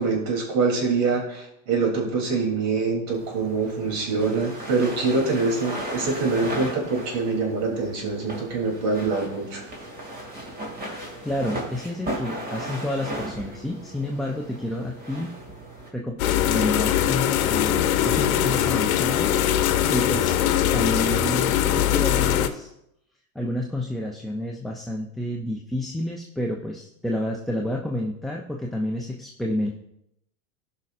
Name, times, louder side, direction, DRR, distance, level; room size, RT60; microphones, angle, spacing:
voice 1, 0.0-9.6, right 4 dB, 55° right, -1 dB, 3.1 m, -25 dB
sound 1, 3.1-15.9, right 1 dB, 20° right, 2.2 m, -36 dB
voice 2, 11.2-15.3 15.9-16.2 16.5-19.4 19.9-20.3 20.7-22.7 23.4-29.7, left 1 dB, ahead, -1 dB, 0.4 m, -29 dB
sound 2, 16.2-22.5, left 11 dB, 80° left, 0.8 m, -22 dB
16.0 x 5.5 x 2.5 m, 0.80 s
supercardioid pair, 115°, 42 cm